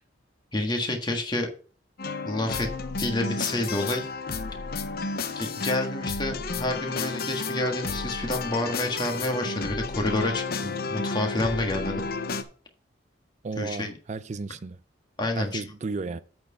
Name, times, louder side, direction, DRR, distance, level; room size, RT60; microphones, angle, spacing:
voice 1, 0.5-1.5 2.2-2.7 3.0-4.1 5.3-12.0 13.6-13.9 15.2-15.6, left 1 dB, 25° left, 1.5 m, -29 dB
sound 1, 2.0-12.4, left 3 dB, 50° left, 0.8 m, -32 dB
voice 2, 13.4-14.8 15.4-16.2, right 4 dB, 35° right, 0.4 m, -33 dB
8.4 x 4.4 x 5.6 m
head